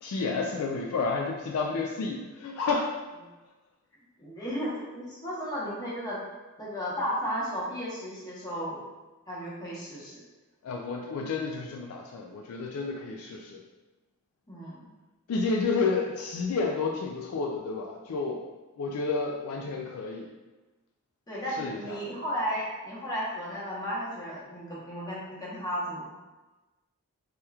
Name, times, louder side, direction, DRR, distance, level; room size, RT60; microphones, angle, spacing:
voice 1, 0.0-2.9 10.6-13.6 15.3-18.4 18.8-20.3 21.6-22.0, left 4 dB, 75° left, 1 dB, 0.3 m, -30 dB
voice 2, 4.2-6.2 6.6-8.8 9.3-10.2 14.5-14.8 21.3-26.1, equal, 20° left, -7 dB, 0.9 m, -34 dB
3.3 x 2.9 x 2.3 m, 1.1 s
head